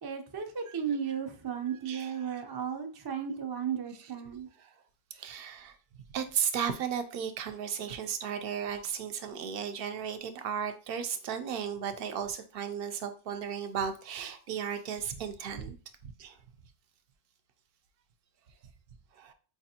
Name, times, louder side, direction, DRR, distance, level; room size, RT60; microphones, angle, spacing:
voice 1, 0.0-4.5, right 7 dB, 40° right, 0.3 m, -35 dB
voice 2, 1.7-2.4 4.6-4.7 5.1-5.7 6.1-15.8 16.0-16.4 19.1-19.3, right 7 dB, 65° right, 0.7 m, -35 dB
4.7 x 2.5 x 2.7 m
omnidirectional pair, 1.1 m